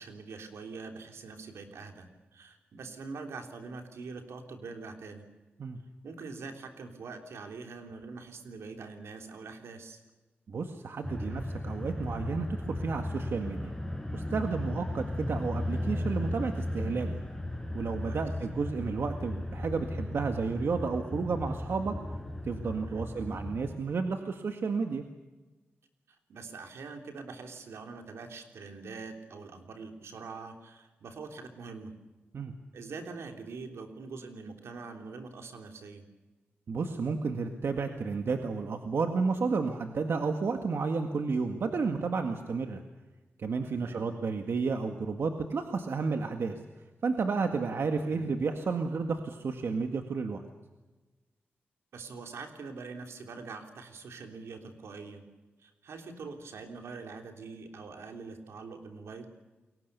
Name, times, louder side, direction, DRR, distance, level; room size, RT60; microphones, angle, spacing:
voice 1, 0.0-5.2 6.0-10.0 18.0-18.2 22.9-23.1 26.1-31.9 32.7-36.1 43.7-44.0 48.1-48.2 51.9-55.2 55.6-59.3, right 4 dB, 85° right, 4 dB, 3.4 m, -44 dB
voice 2, 10.5-13.7 14.1-17.2 17.7-22.0 22.4-25.0 32.3-32.5 36.7-42.8 43.4-46.6 47.0-50.4, right 4 dB, 65° right, 5 dB, 1.9 m, -32 dB
sound 1, 11.0-23.8, left 1 dB, 5° left, 5.0 m, -36 dB
29.5 x 22.5 x 6.9 m, 1.2 s
wide cardioid pair, 90°, 4 cm